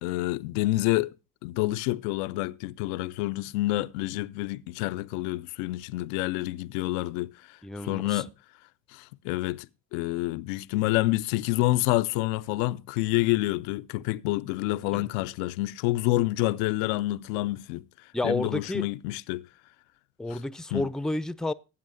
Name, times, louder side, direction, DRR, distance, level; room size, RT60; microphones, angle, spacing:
voice 1, 0.0-1.1 1.4-7.6 7.8-8.3 8.9-9.7 9.9-17.8 18.2-19.4 20.3-20.4 20.7-20.9, left 18 dB, 75° left, 0.5 m, -28 dB
voice 2, 7.6-8.2 14.9-15.1 18.1-18.9 20.2-21.5, left 2 dB, ahead, 0.5 m, -30 dB
18.5 x 8.7 x 2.5 m
hypercardioid pair, 45°, 37 cm